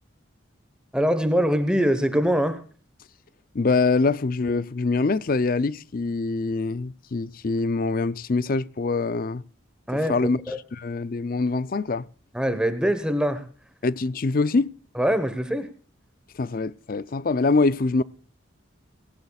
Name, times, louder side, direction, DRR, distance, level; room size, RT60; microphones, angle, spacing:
voice 1, 0.9-2.6 9.9-10.2 10.5-10.6 12.3-13.4 15.0-15.7, equal, 5° right, 1.1 m, -23 dB
voice 2, 3.5-9.4 9.9-10.4 10.7-12.1 13.8-14.7 16.3-18.0, left 3 dB, 45° left, 0.5 m, -24 dB
17.5 x 17.0 x 2.4 m
head